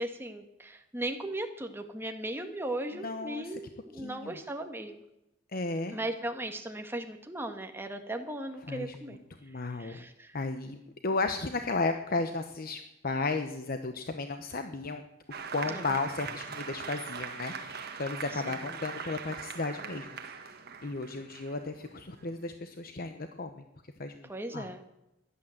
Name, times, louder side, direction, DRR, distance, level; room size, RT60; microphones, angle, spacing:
voice 1, 0.0-5.0 5.9-9.2 9.8-10.3 15.7-15.8 18.4-18.5 24.3-24.8, right 1 dB, 10° right, 5 dB, 1.6 m, -37 dB
voice 2, 2.9-3.6 3.9-4.4 5.5-6.0 8.7-10.0 10.3-15.0 15.5-20.5 20.8-23.6 24.0-24.7, left 3 dB, 50° left, 7 dB, 1.0 m, -34 dB
Applause, 15.3-22.5, right 6 dB, 55° right, 1.6 m, -41 dB
16.0 x 11.5 x 7.8 m, 0.90 s
head